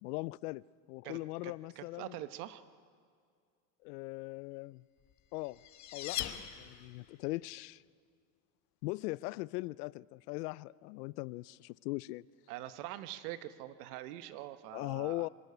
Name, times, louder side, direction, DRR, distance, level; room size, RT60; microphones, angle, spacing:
voice 1, 0.0-2.2 3.8-4.8 5.3-5.6 5.9-7.8 8.8-12.2 14.7-15.3, left 21 dB, 90° left, 0.5 m, -40 dB
voice 2, 1.0-2.6 12.5-15.3, right 14 dB, 75° right, 1.2 m, -44 dB
sound 1, 5.1-7.2, left 11 dB, 40° left, 1.2 m, -41 dB
24.5 x 12.5 x 9.5 m
supercardioid pair, 145°, 45 cm